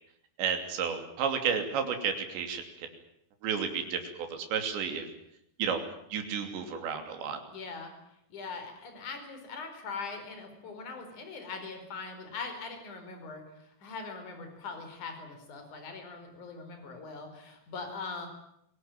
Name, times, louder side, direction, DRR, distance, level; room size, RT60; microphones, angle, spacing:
voice 1, 0.4-2.9 3.4-4.0 4.3-5.1 5.6-5.8 6.1-7.4, right 6 dB, 80° right, 6 dB, 5.3 m, -31 dB
voice 2, 7.5-7.9 8.3-13.4 13.8-18.3, left 4 dB, 45° left, 6 dB, 6.0 m, -41 dB
26.5 x 18.5 x 9.2 m, 0.77 s
omnidirectional pair, 5.1 m